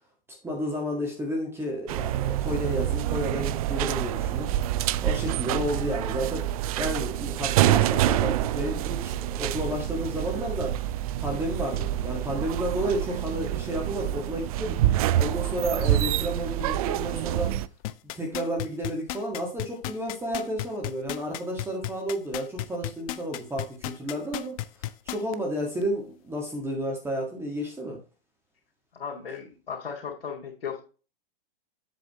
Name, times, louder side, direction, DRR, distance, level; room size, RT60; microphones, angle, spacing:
voice 1, 0.4-4.5 5.0-6.5 6.8-10.7 11.2-14.8 15.1-17.6 18.1-28.0, equal, 10° right, 0 dB, 1.9 m, -31 dB
sound 1, 1.9-17.7, right 13 dB, 40° right, 0.4 m, -27 dB
sound 2, 17.8-25.3 25.8-25.9, left 15 dB, 40° left, 0.6 m, -33 dB
voice 2, 28.9-30.8, left 6 dB, 75° left, -3 dB, 2.6 m, -36 dB
8.1 x 6.9 x 3.1 m, 0.34 s
hypercardioid pair, 125°, 29 cm